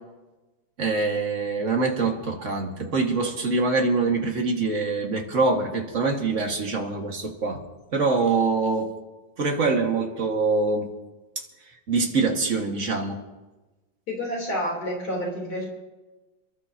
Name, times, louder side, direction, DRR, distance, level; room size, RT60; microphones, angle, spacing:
voice 1, 0.8-7.6 7.9-8.9 9.4-10.9 11.9-13.2, right 3 dB, 40° right, 1 dB, 2.0 m, -24 dB
voice 2, 14.1-15.7, equal, 55° left, -2 dB, 4.0 m, -29 dB
29.0 x 12.0 x 2.8 m, 1.1 s
omnidirectional pair, 2.0 m